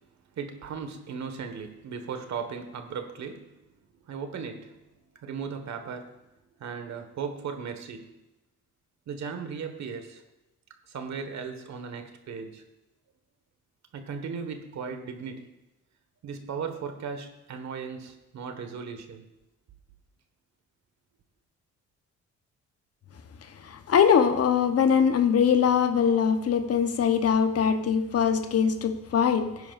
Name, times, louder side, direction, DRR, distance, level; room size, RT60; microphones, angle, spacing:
voice 1, 0.3-3.5 4.0-4.7 5.2-6.1 6.6-8.1 9.1-10.2 10.9-12.6 13.9-15.5 16.2-19.2, right 6 dB, 65° right, 6 dB, 1.5 m, -37 dB
voice 2, 23.6-29.7, left 7 dB, 55° left, 9 dB, 1.0 m, -22 dB
17.5 x 10.0 x 2.5 m, 0.96 s
cardioid pair, 90°, 30 cm